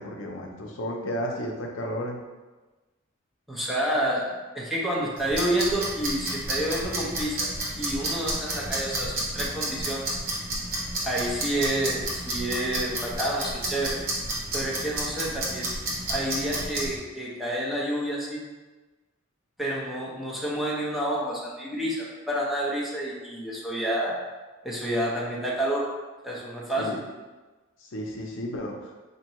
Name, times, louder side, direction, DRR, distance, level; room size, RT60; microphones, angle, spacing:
voice 1, 0.0-2.2 26.8-27.0 27.8-28.9, equal, 65° left, 1 dB, 0.6 m, -33 dB
voice 2, 3.5-7.5 7.8-10.1 11.0-14.0 14.5-15.7 16.1-18.4 19.6-24.1 24.6-25.9 26.2-27.0, right 1 dB, ahead, -6 dB, 0.7 m, -29 dB
sound 1, 5.2-16.9, right 1 dB, 45° right, 1.0 m, -31 dB
4.4 x 2.7 x 3.0 m, 1.2 s
head